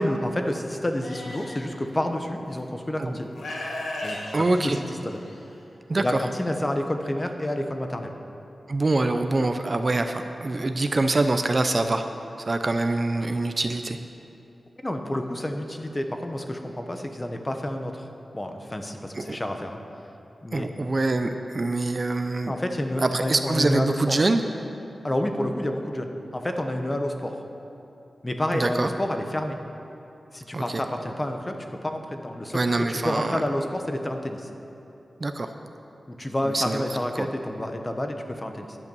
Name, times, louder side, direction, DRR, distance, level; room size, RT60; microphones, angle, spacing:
voice 1, 0.0-3.3 4.0-4.2 4.6-4.7 5.0-5.2 6.0-8.2 14.8-18.1 18.3-19.8 20.4-20.7 22.5-23.9 25.0-27.3 28.2-29.6 30.3-31.6 31.8-32.6 32.9-34.5 36.1-38.8, left 1 dB, 20° left, 5 dB, 0.9 m, -29 dB
Livestock farm animals working animals, 1.0-1.6 2.6-2.7 3.3-5.4, left 1 dB, 85° left, 1.6 m, -35 dB
voice 2, 4.3-4.8 5.9-6.2 8.7-12.1 12.4-14.0 19.1-19.4 20.5-22.6 23.0-24.4 28.5-28.9 30.5-30.8 32.5-33.4 35.2-35.5 36.4-37.3, right 2 dB, 40° right, 7 dB, 0.5 m, -25 dB
11.0 x 8.0 x 6.9 m, 2.9 s
wide cardioid pair, 95°, 0 cm